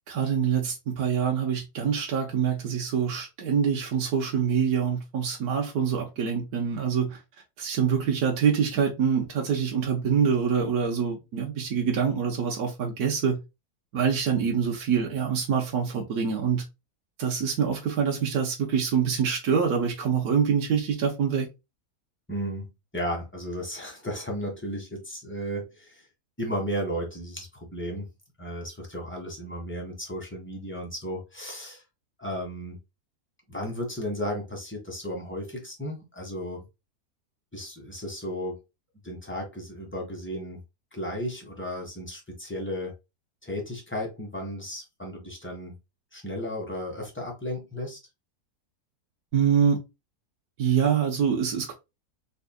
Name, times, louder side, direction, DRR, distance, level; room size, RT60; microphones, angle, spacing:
voice 1, 0.1-7.2 7.6-13.4 13.9-16.6 17.2-21.5 49.3-49.8 50.6-51.7, right 7 dB, 75° right, 1.4 m, -25 dB
voice 2, 22.3-26.1 26.4-28.1 28.4-31.8 32.2-32.8 33.5-36.6 37.5-38.6 39.0-40.6 40.9-42.9 43.4-45.8 46.1-48.0, equal, 10° left, 1.4 m, -34 dB
3.9 x 3.4 x 2.2 m
omnidirectional pair, 1.6 m